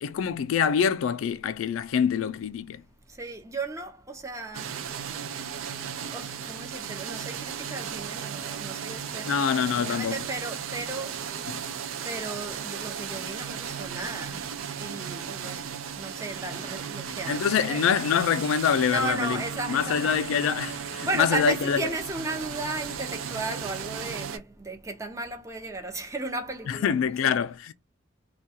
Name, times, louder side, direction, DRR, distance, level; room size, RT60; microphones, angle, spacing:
voice 1, 0.0-2.8 9.2-10.2 11.5-11.6 17.3-19.4 19.7-21.9 26.7-27.7, left 7 dB, 85° left, 0.3 m, -25 dB
voice 2, 3.2-4.7 6.1-11.3 12.0-14.4 14.8-17.8 18.9-20.2 21.0-26.9 27.2-27.4, right 2 dB, 15° right, 0.5 m, -35 dB
sound 1, 4.5-24.4, right 7 dB, 90° right, 0.4 m, -35 dB
2.3 x 2.2 x 2.7 m
head